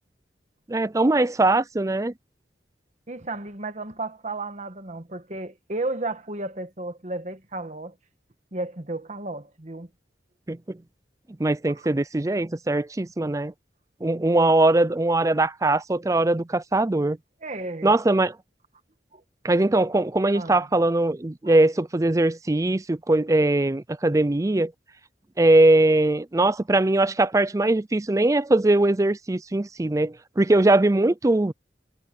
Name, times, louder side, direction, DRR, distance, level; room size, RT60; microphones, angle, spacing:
voice 1, 0.7-2.1 10.5-10.8 11.4-13.5 14.0-17.2 17.8-18.4 19.4-24.7 25.4-31.5, right 2 dB, 20° right, 0.5 m, -21 dB
voice 2, 3.1-8.0 8.5-9.9 17.4-17.9 19.1-19.2 20.3-20.7 21.4-21.6, right 2 dB, 40° right, 1.5 m, -33 dB
head